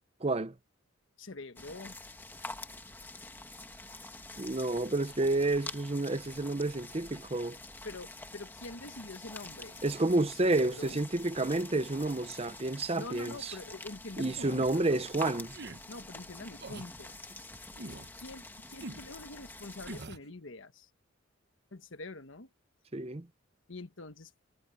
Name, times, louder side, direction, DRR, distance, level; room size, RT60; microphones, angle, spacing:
voice 1, 0.2-0.5 4.4-7.6 9.8-13.5 14.2-15.6 22.9-23.3, right 2 dB, 30° right, 0.7 m, -30 dB
voice 2, 1.2-2.0 7.8-9.8 10.1-11.0 13.0-15.1 15.9-17.2 17.9-20.9 21.7-22.5 23.7-24.3, left 2 dB, 65° left, 1.3 m, -45 dB
sound 1, 1.6-20.1, left 2 dB, 10° left, 1.5 m, -47 dB
sound 2, 14.3-14.7 15.5-15.8 16.6-16.9 17.8-18.1 18.8-19.1 19.9-20.3, right 2 dB, 50° right, 1.2 m, -43 dB
head